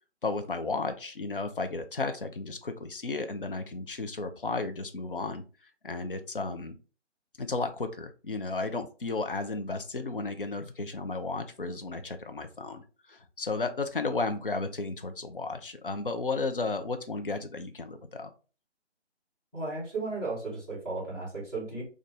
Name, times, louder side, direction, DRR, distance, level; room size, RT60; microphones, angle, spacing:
voice 1, 0.2-5.4 5.8-6.8 7.4-18.3, left 3 dB, 50° left, 7 dB, 0.6 m, -33 dB
voice 2, 19.5-21.8, right 3 dB, 5° left, -12 dB, 1.5 m, -34 dB
3.9 x 2.6 x 3.4 m, 0.36 s
figure-of-eight pair, 155°, 36 cm